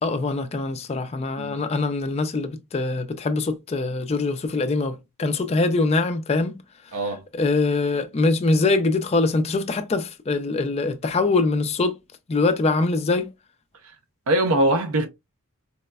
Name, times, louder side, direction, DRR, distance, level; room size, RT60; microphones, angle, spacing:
voice 1, 0.0-6.6 6.9-7.0 7.3-12.0 12.3-13.3, left 3 dB, 30° left, 0.3 m, -23 dB
voice 2, 14.3-15.1, right 1 dB, 70° right, 0.5 m, -22 dB
4.1 x 2.1 x 2.2 m
head